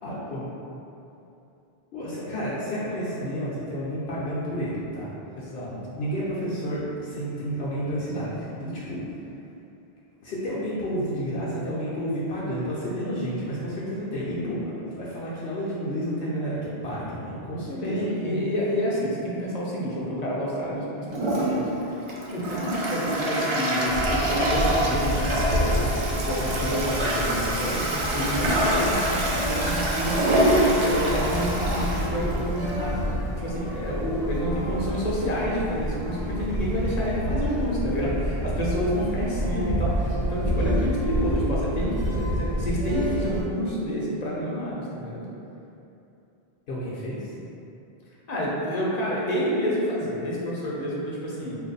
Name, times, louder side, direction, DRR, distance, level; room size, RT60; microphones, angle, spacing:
voice 1, 0.0-0.4 1.9-5.1 5.9-9.0 10.2-18.4 46.7-47.3, equal, 75° left, -9 dB, 0.9 m, -30 dB
voice 2, 5.4-6.0 17.8-21.7 22.3-25.9 26.2-27.8 28.1-33.0 33.4-45.2 48.3-51.6, equal, 45° left, -6 dB, 0.7 m, -29 dB
Toilet flush, 21.1-32.9, right 1 dB, 50° right, 0.3 m, -26 dB
sound 1, 23.9-43.4, equal, 70° right, 0.9 m, -29 dB
3.0 x 2.5 x 4.0 m, 2.8 s
omnidirectional pair, 1.1 m